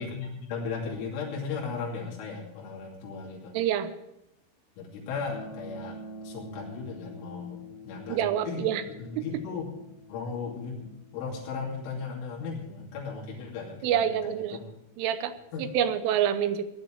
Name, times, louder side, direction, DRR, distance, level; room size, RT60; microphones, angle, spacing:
voice 1, 0.0-3.6 4.8-6.0 6.2-7.6 7.8-8.2 8.5-8.6 9.0-9.7 10.1-14.6 15.5-15.7, left 5 dB, 75° left, -4 dB, 5.2 m, -36 dB
voice 2, 3.5-3.9 8.1-8.8 9.2-9.3 13.8-14.6 15.0-15.3 15.6-16.7, right 10 dB, 85° right, 10 dB, 3.3 m, -27 dB
sound 1, 5.3-15.4, left 1 dB, 55° left, 1.9 m, -48 dB
17.5 x 11.0 x 4.6 m, 0.87 s
omnidirectional pair, 5.7 m